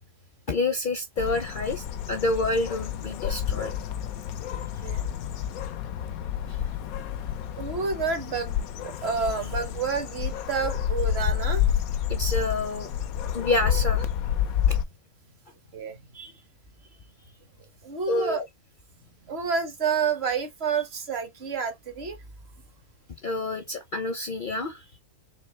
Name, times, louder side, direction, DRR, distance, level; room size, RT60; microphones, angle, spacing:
voice 1, 0.5-3.7 6.5-6.6 12.1-12.9 13.3-14.1 14.7-14.8 18.1-18.4 23.2-24.9, left 2 dB, 50° left, 0.7 m, -28 dB
sound 1, 1.2-14.8, left 9 dB, 85° left, 1.1 m, -29 dB
voice 2, 7.6-11.7 15.7-16.4 17.8-18.4 19.3-22.2, right 5 dB, 50° right, 1.2 m, -29 dB
4.4 x 3.1 x 3.1 m
omnidirectional pair, 1.5 m